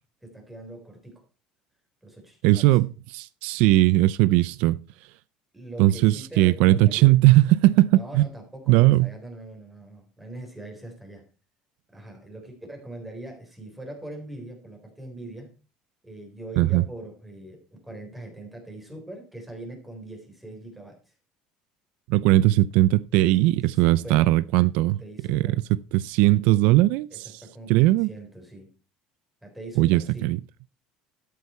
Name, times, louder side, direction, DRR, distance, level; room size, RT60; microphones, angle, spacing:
voice 1, 0.2-1.2 2.0-2.8 5.5-7.2 7.9-11.3 11.9-15.5 16.0-21.1 23.4-24.3 25.0-25.6 27.1-28.7 29.4-30.3, right 1 dB, 5° right, 3.9 m, -42 dB
voice 2, 2.4-4.8 5.8-8.2 8.7-9.1 16.6-16.8 22.1-25.0 25.3-27.4 27.7-28.1 29.8-30.4, right 17 dB, 70° right, 0.5 m, -19 dB
13.0 x 8.3 x 4.4 m
cardioid pair, 150°, 2 cm